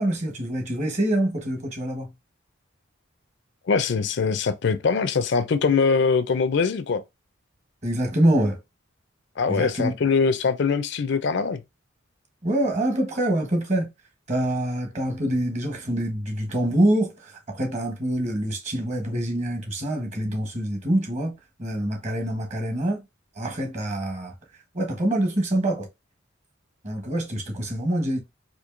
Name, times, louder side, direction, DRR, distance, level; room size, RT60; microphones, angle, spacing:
voice 1, 0.0-2.1 7.8-8.6 9.5-9.9 12.4-13.9 14.3-21.3 21.6-23.0 23.3-24.3 24.7-25.9 26.8-28.2, right 1 dB, 35° right, 1.2 m, -25 dB
voice 2, 3.7-7.0 9.4-11.6, left 5 dB, 60° left, 0.4 m, -22 dB
4.4 x 2.6 x 2.5 m
head